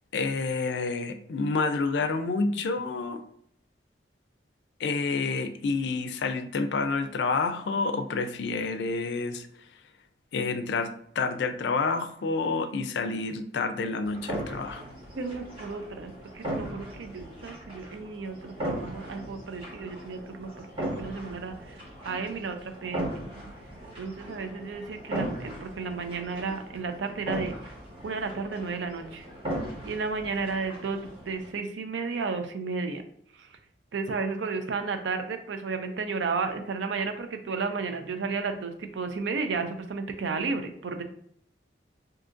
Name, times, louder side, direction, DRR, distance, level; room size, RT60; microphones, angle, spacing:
voice 1, 0.1-3.2 4.8-9.5 10.3-14.8, left 4 dB, 70° left, 9 dB, 0.4 m, -29 dB
sound 1, 14.0-31.5, right 1 dB, 30° right, 1.2 m, -38 dB
voice 2, 15.2-21.8 22.0-23.2 24.0-27.5 28.0-29.2 29.8-33.0 33.4-33.5 33.9-41.0, right 4 dB, 85° right, 7 dB, 0.5 m, -33 dB
2.7 x 2.5 x 3.7 m, 0.65 s
head